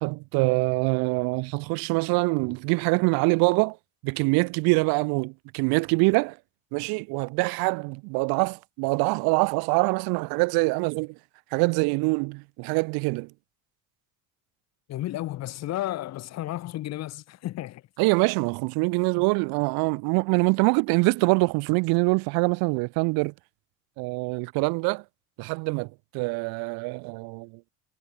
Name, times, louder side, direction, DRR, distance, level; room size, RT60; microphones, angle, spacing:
voice 1, 0.0-3.8 4.0-6.4 6.7-11.2 11.5-13.3 18.0-23.3 24.0-25.0 25.4-27.6, right 29 dB, 85° right, 2.7 m, -24 dB
voice 2, 14.9-17.8, left 15 dB, 45° left, 5.7 m, -32 dB
cardioid pair, 180°, 35 cm